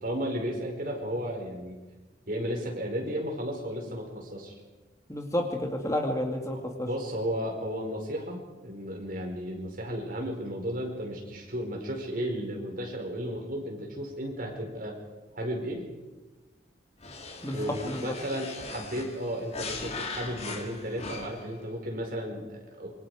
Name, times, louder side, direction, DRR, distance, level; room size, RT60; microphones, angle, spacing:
voice 1, 0.0-1.8 2.3-4.5 6.8-15.0 15.3-15.9 17.5-23.0, equal, 50° right, 1 dB, 4.9 m, -34 dB
voice 2, 5.1-6.9 17.4-18.1, left 1 dB, 15° left, 2 dB, 2.2 m, -30 dB
sound 1, 17.0-21.6, left 3 dB, 35° left, 2.3 m, -39 dB
27.0 x 24.0 x 5.0 m, 1.2 s
head